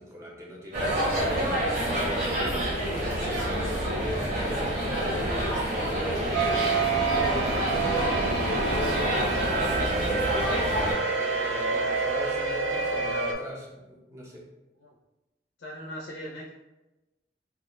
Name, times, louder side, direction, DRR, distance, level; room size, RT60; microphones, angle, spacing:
voice 1, 0.0-2.6 3.1-10.3 11.1-14.5, equal, 15° right, -3 dB, 0.5 m, -39 dB
sound 1, 0.7-10.9, right 1 dB, 50° right, 0.9 m, -28 dB
sound 2, 6.3-13.3, right 4 dB, 70° right, 0.4 m, -28 dB
voice 2, 15.6-16.5, equal, 75° left, -2 dB, 0.4 m, -39 dB
2.3 x 2.1 x 2.9 m, 1.0 s
head